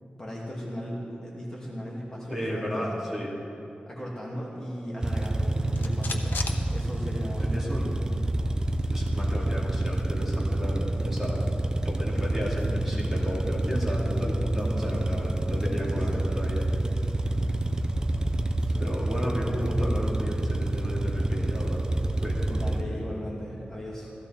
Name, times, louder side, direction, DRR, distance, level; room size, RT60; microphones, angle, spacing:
voice 1, 0.2-2.9 3.9-7.9 15.6-16.2 18.7-18.9 22.5-24.1, equal, 15° left, -5 dB, 2.5 m, -37 dB
voice 2, 2.3-3.3 7.4-8.1 8.9-11.4 11.8-16.6 18.8-21.8 22.2-22.9, equal, 5° right, -5 dB, 2.7 m, -33 dB
sound 1, 5.0-22.8, right 1 dB, 25° right, 0.6 m, -28 dB
sound 2, 5.1-7.5 7.8-7.9 8.2-10.1, left 4 dB, 85° left, 0.9 m, -41 dB
sound 3, 12.1-20.1, right 2 dB, 65° right, 2.8 m, -49 dB
16.5 x 14.5 x 4.4 m, 2.7 s
wide cardioid pair, 125°, 3 cm